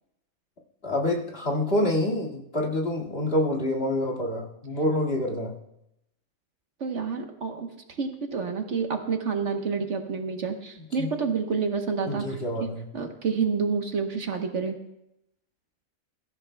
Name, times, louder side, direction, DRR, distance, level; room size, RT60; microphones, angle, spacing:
voice 1, 0.8-5.6 11.0-11.1 12.1-12.9, left 1 dB, 45° left, 0 dB, 2.3 m, -27 dB
voice 2, 6.8-7.7 8.0-14.8, right 5 dB, 60° right, 4 dB, 1.4 m, -29 dB
23.5 x 14.0 x 2.3 m, 0.83 s
omnidirectional pair, 1.4 m